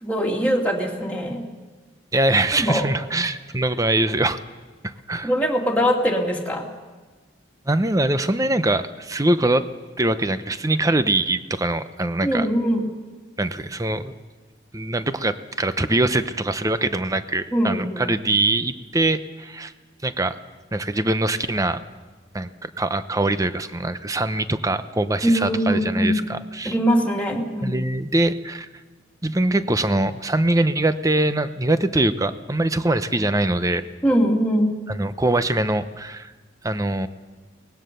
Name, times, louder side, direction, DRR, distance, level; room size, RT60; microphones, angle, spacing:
voice 1, 0.0-1.5 2.6-2.8 5.2-6.7 12.2-12.8 17.5-18.0 25.2-26.1 26.6-27.8 34.0-34.8, equal, 10° left, -1 dB, 2.4 m, -22 dB
voice 2, 2.1-4.4 4.8-5.3 7.7-9.7 10.0-12.5 13.4-14.1 14.7-19.7 20.0-20.4 20.7-21.8 22.3-26.7 27.6-28.7 29.2-33.8 34.9-36.3 36.6-37.1, right 2 dB, 15° right, 11 dB, 0.8 m, -23 dB
23.5 x 19.0 x 6.8 m, 1.3 s
head